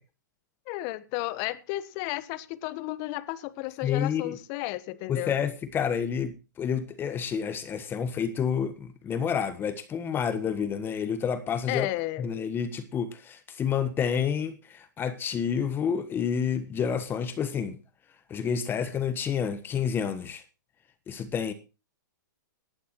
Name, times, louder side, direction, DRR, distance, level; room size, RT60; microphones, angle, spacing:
voice 1, 0.7-5.3 11.7-12.3, left 18 dB, 40° left, 1.1 m, -33 dB
voice 2, 3.8-4.4 5.1-11.9 12.2-17.8 18.3-20.4 21.1-21.5, left 7 dB, 20° left, 1.3 m, -29 dB
18.5 x 11.5 x 3.1 m
hypercardioid pair, 130°, 11 cm